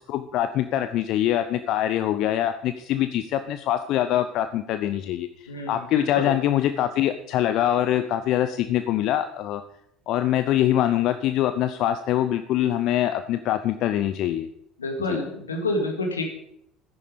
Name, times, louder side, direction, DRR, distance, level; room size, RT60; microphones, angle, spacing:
voice 1, 0.1-9.6 10.1-14.5 15.1-15.2, left 12 dB, 55° left, 10 dB, 0.7 m, -24 dB
voice 2, 5.5-6.3 14.8-16.3, left 2 dB, 85° left, 4 dB, 2.4 m, -28 dB
14.0 x 10.5 x 5.2 m, 0.73 s
figure-of-eight pair, 60°, 0 cm